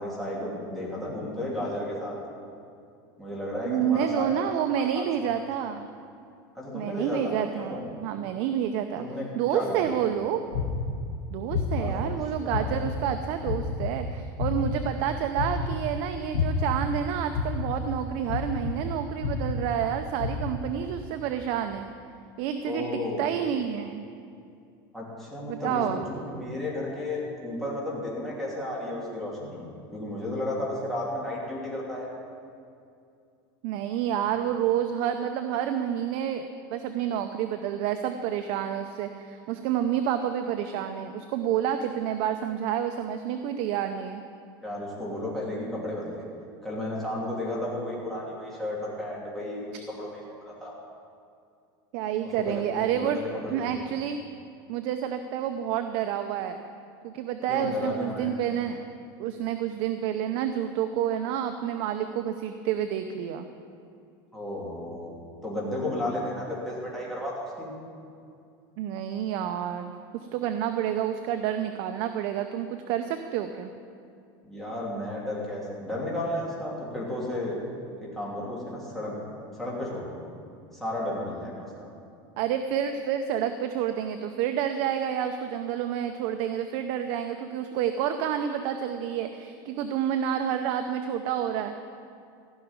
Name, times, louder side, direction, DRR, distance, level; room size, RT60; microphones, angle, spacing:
voice 1, 0.0-2.2 3.2-4.4 4.7-5.0 6.5-7.8 9.0-9.3 9.5-10.0 11.7-12.0 12.4-12.7 22.6-23.3 24.9-32.1 44.6-46.2 46.6-50.2 50.5-50.7 52.2-52.6 52.9-53.7 57.5-58.3 64.3-65.1 65.4-67.7 74.4-77.6 78.0-79.2 79.5-80.1 80.8-81.9, left 1 dB, ahead, -6 dB, 2.9 m, -33 dB
voice 2, 3.7-5.9 6.7-9.0 9.3-10.4 11.3-21.9 22.4-22.9 23.2-24.0 25.5-26.1 33.6-44.2 51.9-53.2 53.5-54.2 54.7-56.6 57.0-58.8 59.2-63.5 68.8-69.9 70.3-73.7 82.4-91.7, right 9 dB, 50° right, 7 dB, 0.6 m, -29 dB
sound 1, 10.5-10.9 11.5-11.9 12.5-12.9 13.4-13.9 14.4-14.8 15.3-15.8 16.3-16.7 17.3-17.8 18.3-18.7 19.2-19.6 20.2-20.3, left 5 dB, 65° left, 1.8 m, -28 dB
15.5 x 6.0 x 9.6 m, 2.5 s
supercardioid pair, 165°, 12 cm